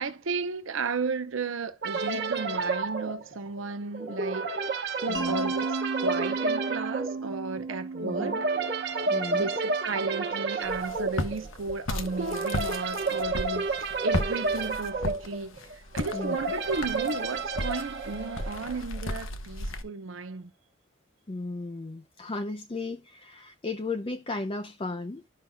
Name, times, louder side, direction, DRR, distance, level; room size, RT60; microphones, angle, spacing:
voice 1, 0.0-4.5 5.0-8.5 9.3-20.5, right 4 dB, 80° right, 0.7 m, -34 dB
sound 1, 1.8-19.0, right 3 dB, 55° right, 1.1 m, -31 dB
voice 2, 5.1-5.4 8.0-8.4 9.1-9.5 10.5-10.7 16.1-16.4 21.3-25.2, left 3 dB, 25° left, 0.5 m, -35 dB
Mallet percussion, 5.1-9.9, right 4 dB, 20° right, 1.3 m, -35 dB
Walk footsteps, 10.6-19.8, left 2 dB, 85° left, 1.0 m, -35 dB
12.5 x 5.6 x 2.2 m
head